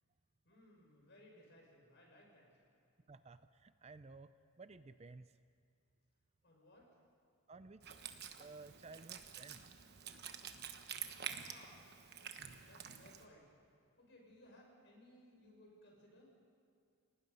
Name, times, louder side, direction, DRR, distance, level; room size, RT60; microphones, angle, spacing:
voice 1, 0.4-2.7 6.4-7.0 11.5-11.9 12.6-13.5 14.0-16.3, left 1 dB, 50° left, -1 dB, 6.0 m, -62 dB
voice 2, 3.1-5.3 7.5-8.0 8.4-9.7, right 3 dB, 30° right, 12 dB, 0.5 m, -55 dB
Wind instrument woodwind instrument, 7.8-13.3, right 8 dB, 50° right, 1.2 m, -48 dB
29.0 x 18.5 x 5.5 m, 2.4 s
head